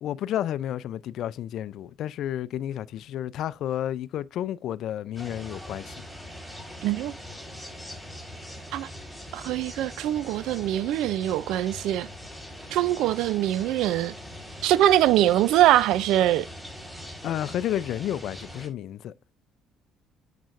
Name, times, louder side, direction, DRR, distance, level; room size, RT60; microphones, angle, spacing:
voice 1, 0.0-6.0 17.2-19.1, left 11 dB, 65° left, 0.5 m, -31 dB
sound 1, 5.2-18.7, equal, ahead, 4.3 m, -42 dB
voice 2, 6.8-7.1 8.7-8.9 9.3-12.1 12.7-14.1 14.6-16.4, right 13 dB, 70° right, 0.5 m, -23 dB
8.8 x 6.9 x 2.6 m
supercardioid pair, 65°, 0 cm